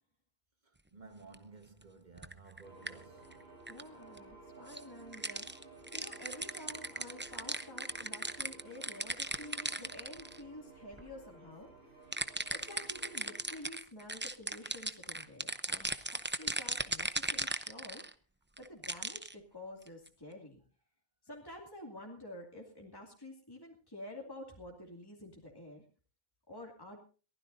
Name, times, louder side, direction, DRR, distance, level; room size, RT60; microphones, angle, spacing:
voice 1, 0.6-3.6, right 4 dB, 45° right, 1.9 m, -55 dB
sound 1, 1.3-1.4 2.2-2.9 3.3-3.4 3.7-3.8 4.2-4.3 4.7-4.8 5.1-10.4 10.9-11.1 12.1-18.1 18.6-19.3 19.9-20.1, right 2 dB, 10° right, 0.7 m, -37 dB
sound 2, 2.6-13.6, right 3 dB, 80° right, 7.5 m, -55 dB
voice 2, 3.7-11.7 12.1-18.0 18.6-20.6 21.2-25.8 26.5-27.0, left 1 dB, 20° left, 2.6 m, -50 dB
22.5 x 15.5 x 2.7 m
omnidirectional pair, 1.0 m